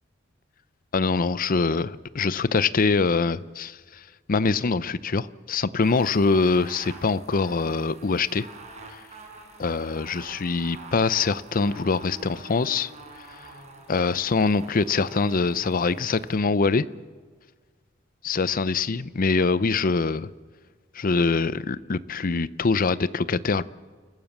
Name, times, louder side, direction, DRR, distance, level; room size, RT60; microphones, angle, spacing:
voice 1, 0.9-3.8 4.3-8.5 9.6-12.9 13.9-16.9 18.2-20.3 20.9-23.6, left 4 dB, 45° left, 17 dB, 0.6 m, -24 dB
sound 1, 5.8-16.4, right 2 dB, 35° right, 5.1 m, -46 dB
29.5 x 15.0 x 7.3 m, 1.5 s
head